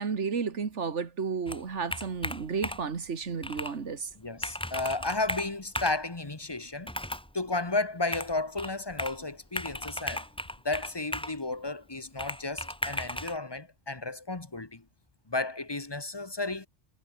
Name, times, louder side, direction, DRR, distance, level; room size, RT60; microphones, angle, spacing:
voice 1, 0.0-4.1, right 5 dB, 85° right, 2.0 m, -32 dB
Computer keyboard, 1.5-3.0 3.4-3.8 4.1-4.2 4.4-6.0 6.8-7.3 8.1-9.2 9.6-11.4 12.2-13.4, left 1 dB, 5° left, 1.0 m, -36 dB
voice 2, 4.1-6.9 7.3-10.2 10.6-14.8 15.3-16.7, left 2 dB, 20° left, 1.4 m, -33 dB
omnidirectional pair, 1.2 m